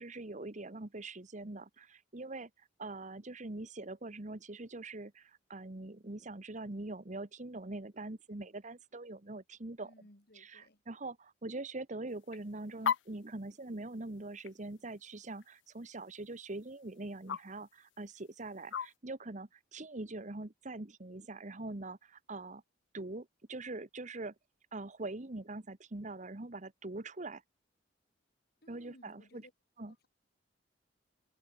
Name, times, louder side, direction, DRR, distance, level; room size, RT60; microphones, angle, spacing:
voice 1, 0.0-9.9 10.4-22.6 22.9-24.3 24.7-27.4 28.7-29.5 29.8-29.9, right 2 dB, 40° right, 1.3 m, -43 dB
voice 2, 9.8-10.8 28.6-29.5 29.9-30.1, left 1 dB, 60° left, 6.0 m, -60 dB
sound 1, 12.1-19.0, left 7 dB, 80° left, 0.5 m, -42 dB
head